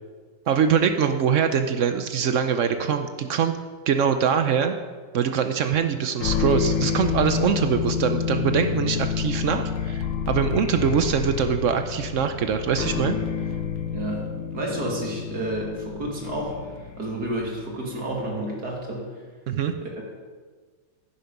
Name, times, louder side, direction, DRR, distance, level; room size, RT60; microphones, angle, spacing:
voice 1, 0.5-3.5 3.9-4.7 5.1-13.2 19.5-19.7, right 7 dB, 80° right, 8 dB, 0.6 m, -23 dB
sound 1, 6.2-17.6, left 7 dB, 80° left, 1.5 m, -28 dB
voice 2, 13.9-14.2 14.5-16.6 17.0-19.1 19.8-20.0, right 1 dB, 50° right, -2 dB, 2.7 m, -30 dB
10.5 x 10.0 x 5.3 m, 1.5 s
omnidirectional pair, 2.1 m